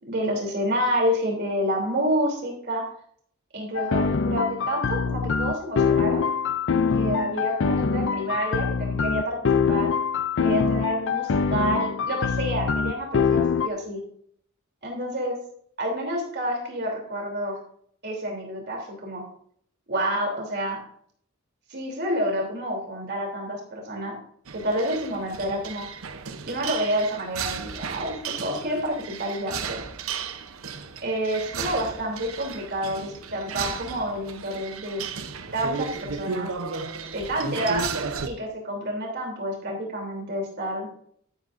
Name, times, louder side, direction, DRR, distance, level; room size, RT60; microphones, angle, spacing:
voice 1, 0.1-2.8 3.5-6.2 6.9-9.4 9.7-9.9 10.4-14.0 14.8-15.4 15.8-17.6 18.0-19.2 19.9-20.8 21.7-24.2 24.5-25.8 26.5-29.8 31.0-35.0 35.5-36.5 37.1-37.8 38.3-40.9, equal, 50° right, 0 dB, 3.2 m, -28 dB
sound 1, 3.8-13.7, left 5 dB, 60° left, 0.4 m, -24 dB
sound 2, 24.5-38.3, right 5 dB, 80° right, 0.8 m, -34 dB
12.5 x 11.5 x 2.6 m, 0.63 s
head